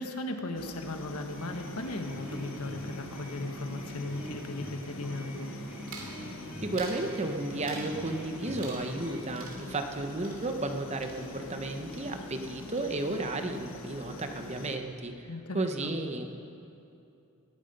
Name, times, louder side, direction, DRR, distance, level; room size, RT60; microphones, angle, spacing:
voice 1, 0.0-5.5 15.3-16.0, left 2 dB, 80° left, 5 dB, 1.3 m, -37 dB
sound 1, 0.5-14.8, left 2 dB, 60° left, 1.3 m, -44 dB
sound 2, 1.3-9.2, equal, 10° right, 4.5 m, -44 dB
sound 3, 5.9-6.2 6.7-7.1 7.6-8.0 8.6-9.1 9.4-11.7 11.9-12.5 12.8-13.3, right 3 dB, 60° right, 2.8 m, -47 dB
voice 2, 6.6-16.3, right 2 dB, 30° right, 5 dB, 0.9 m, -33 dB
20.0 x 12.0 x 5.4 m, 2.7 s
head